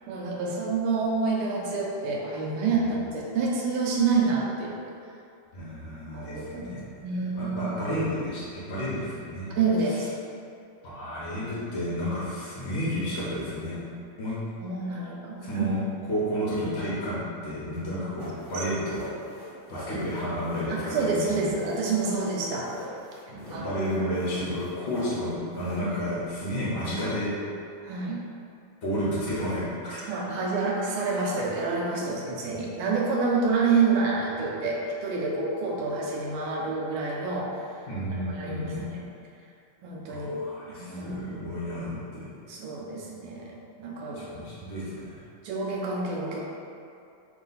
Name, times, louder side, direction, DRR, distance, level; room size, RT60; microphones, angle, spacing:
voice 1, 0.1-4.9 6.1-6.7 7.0-7.8 9.5-10.1 14.6-15.7 18.5-18.6 20.7-22.7 23.3-23.7 27.8-28.2 30.1-37.8 38.1-39.1 39.8-40.4 40.7-41.4 42.5-44.3 45.4-46.4, right 4 dB, 80° right, -3 dB, 1.5 m, -28 dB
voice 2, 5.5-6.8 7.3-9.5 10.8-13.8 14.2-14.3 15.4-19.1 19.7-21.5 23.4-27.3 28.8-30.2 37.9-38.8 40.1-42.3 44.1-45.2, equal, 70° left, -9 dB, 0.6 m, -31 dB
sound 1, 18.2-26.4, left 2 dB, 20° left, 0.7 m, -44 dB
3.8 x 2.4 x 3.9 m, 2.5 s
omnidirectional pair, 2.4 m